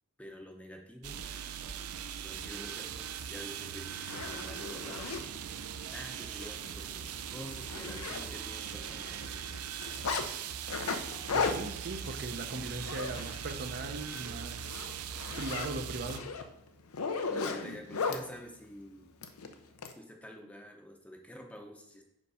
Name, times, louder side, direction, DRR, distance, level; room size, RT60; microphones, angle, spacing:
voice 1, 0.2-1.2 2.2-5.1 5.9-9.2 17.2-19.1 20.0-22.0, equal, 5° left, 2 dB, 0.7 m, -47 dB
sound 1, 1.0-16.2, right 8 dB, 85° right, 0.5 m, -40 dB
Zipper (clothing), 3.4-3.5 3.9-5.2 5.8-6.0 6.3-6.5 6.8-6.9 7.3-8.6 8.8-10.3 10.7-13.6 14.0-14.2 14.6-18.2 19.2-19.9, left 4 dB, 75° left, 0.6 m, -36 dB
voice 2, 11.3-14.7 15.4-16.2, right 2 dB, 50° right, 5 dB, 0.7 m, -39 dB
5.4 x 5.2 x 4.8 m, 0.80 s
head